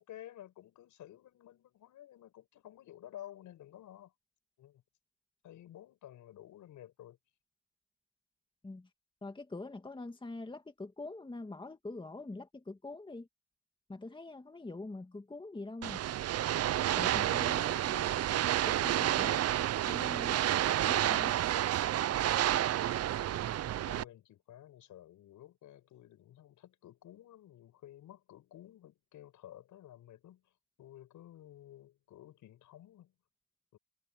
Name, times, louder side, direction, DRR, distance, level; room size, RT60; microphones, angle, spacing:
voice 1, 0.0-4.1 4.6-4.8 5.4-7.2 22.7-33.1 33.7-33.8, left 12 dB, 80° left, 6.9 m, -53 dB
voice 2, 9.2-13.3 13.9-16.1 16.5-18.3 18.7-19.5 19.9-20.4 20.9-21.3, left 2 dB, 15° left, 2.2 m, -44 dB
sound 1, 15.8-24.0, right 12 dB, 55° right, 0.6 m, -30 dB
cardioid pair, 90°, 30 cm